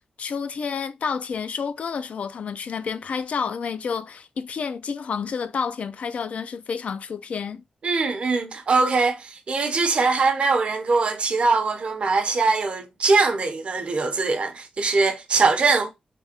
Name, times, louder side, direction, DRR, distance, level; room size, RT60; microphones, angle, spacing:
voice 1, 0.2-7.6, left 6 dB, 65° left, 0.3 m, -29 dB
voice 2, 7.8-15.9, right 4 dB, 50° right, 0.6 m, -22 dB
3.4 x 3.2 x 2.7 m
wide cardioid pair, 165°, 2 cm